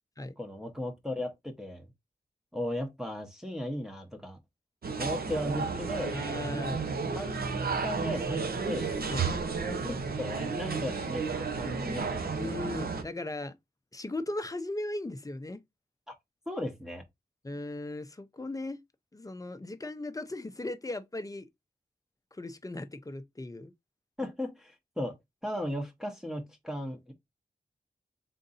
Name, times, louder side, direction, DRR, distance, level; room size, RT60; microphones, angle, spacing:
voice 1, 0.4-1.9 2.5-4.4 5.0-6.2 7.1-8.9 9.7-12.4 16.1-16.2 16.5-17.0 24.2-25.2 25.4-27.1, left 1 dB, 5° right, 0.8 m, -36 dB
sound 1, 4.8-13.0, right 5 dB, 75° right, 0.8 m, -32 dB
voice 2, 6.1-6.8 9.1-9.3 12.3-13.5 13.9-15.6 17.4-18.8 19.1-21.5 22.3-23.7, left 2 dB, 20° left, 0.6 m, -37 dB
3.7 x 2.6 x 4.0 m
wide cardioid pair, 95°, 16 cm